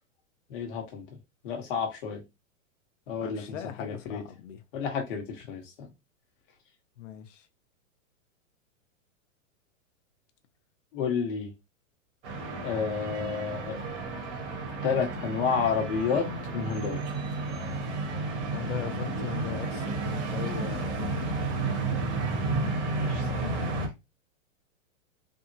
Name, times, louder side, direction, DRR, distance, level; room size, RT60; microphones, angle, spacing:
voice 1, 0.5-1.0 1.4-2.2 3.1-4.2 4.7-5.9 10.9-11.5 12.6-13.8 14.8-17.0 23.0-23.4, left 6 dB, 40° left, 1.1 m, -30 dB
voice 2, 3.2-4.6 7.0-7.5 18.5-21.3, left 10 dB, 65° left, 0.7 m, -39 dB
sound 1, 12.2-23.9, right 3 dB, 60° right, 1.3 m, -32 dB
3.6 x 2.1 x 2.6 m
supercardioid pair, 165°, 40 cm